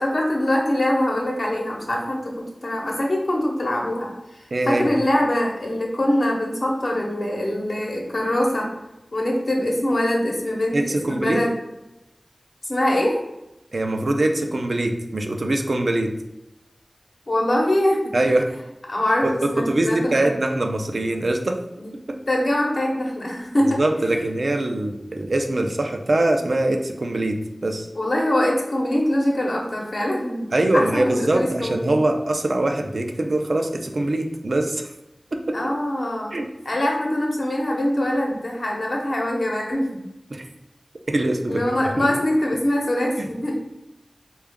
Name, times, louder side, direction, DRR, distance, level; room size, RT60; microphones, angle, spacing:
voice 1, 0.0-4.1 4.7-8.7 9.1-11.5 12.6-13.2 17.3-18.1 18.9-20.2 21.8-21.9 22.3-24.2 27.9-30.5 30.7-31.9 35.5-36.4 36.6-40.0 41.5-43.6, left 1 dB, 60° left, -1 dB, 0.8 m, -23 dB
voice 2, 4.5-4.9 10.7-11.4 13.7-16.1 18.1-18.5 19.2-21.6 22.1-22.2 23.6-27.9 30.5-34.9 35.3-35.6 36.3-36.5 40.3-40.4 41.1-42.1 43.2-43.3, right 2 dB, 70° right, 3 dB, 0.4 m, -23 dB
3.8 x 2.3 x 3.5 m, 0.91 s
wide cardioid pair, 70°, 0 cm